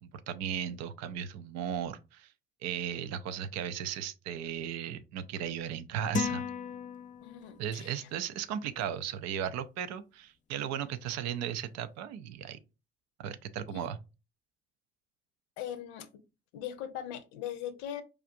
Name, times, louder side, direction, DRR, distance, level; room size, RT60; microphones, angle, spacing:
voice 1, 0.0-2.3 2.6-6.5 7.6-12.6 13.2-14.0, right 9 dB, 60° right, 0.5 m, -36 dB
sound 1, 6.1-7.7, left 5 dB, 25° left, 0.4 m, -35 dB
voice 2, 7.2-8.1 13.7-13.9 15.6-16.2 16.5-18.0, left 10 dB, 70° left, 0.6 m, -40 dB
4.7 x 2.4 x 2.5 m
figure-of-eight pair, 45°, 31 cm